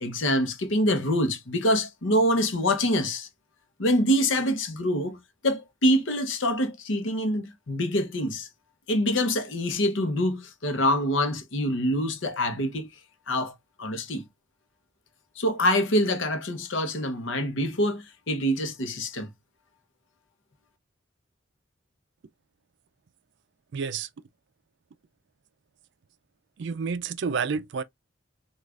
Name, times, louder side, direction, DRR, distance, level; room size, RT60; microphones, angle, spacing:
voice 1, 0.0-3.3 3.8-5.2 5.4-8.5 8.9-12.9 13.3-14.3 15.4-19.3, equal, 70° left, 0.8 m, -25 dB
voice 2, 23.7-24.1 26.6-27.8, right 5 dB, 60° right, 0.4 m, -29 dB
6.3 x 2.4 x 2.4 m
head